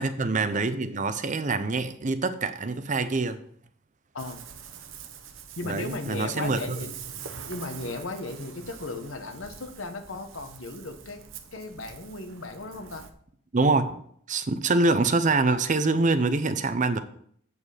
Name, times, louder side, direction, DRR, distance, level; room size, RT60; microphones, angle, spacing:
voice 1, 0.0-3.4 5.6-6.8 13.5-14.0 14.3-17.0, right 3 dB, 40° right, 11 dB, 0.6 m, -25 dB
Ocean, 4.2-13.1, right 7 dB, 70° right, 0.9 m, -44 dB
voice 2, 5.6-6.9 7.5-11.2 11.5-13.0, left 2 dB, 70° left, 7 dB, 1.2 m, -36 dB
8.1 x 7.4 x 5.0 m, 0.64 s
head